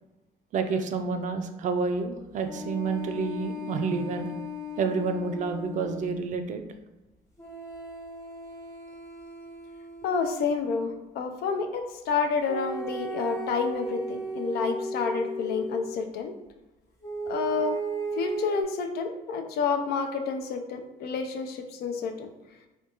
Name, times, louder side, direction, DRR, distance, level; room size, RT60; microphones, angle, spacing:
voice 1, 0.5-4.3 4.8-6.6, right 4 dB, 50° right, 7 dB, 0.4 m, -29 dB
sound 1, 2.4-6.2 7.4-10.4 12.5-16.0 17.0-18.6, right 1 dB, 20° left, 1.0 m, -36 dB
voice 2, 10.0-16.3 17.3-17.8 18.1-22.3, left 5 dB, 70° left, 5 dB, 0.4 m, -29 dB
3.5 x 2.3 x 2.9 m, 1.0 s
cardioid pair, 110°, 17 cm